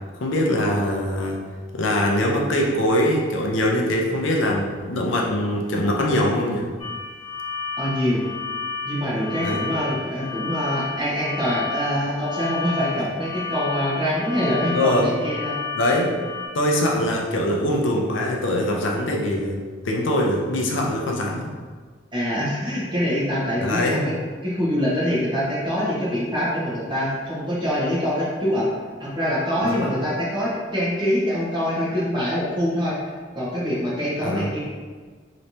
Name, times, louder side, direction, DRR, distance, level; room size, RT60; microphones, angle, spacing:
voice 1, 0.2-1.4 1.7-6.7 9.4-9.7 14.7-15.1 15.7-16.1 16.5-21.5 23.6-24.1 29.6-29.9 34.2-34.5, left 1 dB, 70° left, -1 dB, 0.5 m, -22 dB
sound 1, 6.8-16.5, left 5 dB, 25° left, 0.9 m, -32 dB
voice 2, 7.8-8.2 8.8-15.6 22.1-24.1 24.4-28.7 29.0-32.9 33.3-34.6, equal, 25° right, -8 dB, 1.1 m, -24 dB
3.2 x 3.0 x 2.7 m, 1.5 s
head